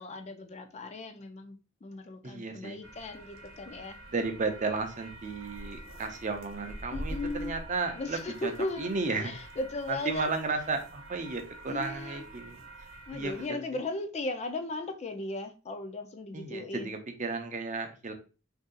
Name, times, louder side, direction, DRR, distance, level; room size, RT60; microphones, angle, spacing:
voice 1, 0.0-4.0 6.9-7.5 7.9-10.5 11.7-12.2 13.1-16.9, left 2 dB, 35° left, 0.4 m, -37 dB
voice 2, 2.2-2.8 4.1-8.5 8.8-9.3 9.9-13.6 16.3-18.1, right 3 dB, 40° right, 0.6 m, -34 dB
sound 1, 2.8-13.5, right 1 dB, 90° right, 0.8 m, -45 dB
2.6 x 2.3 x 3.7 m
head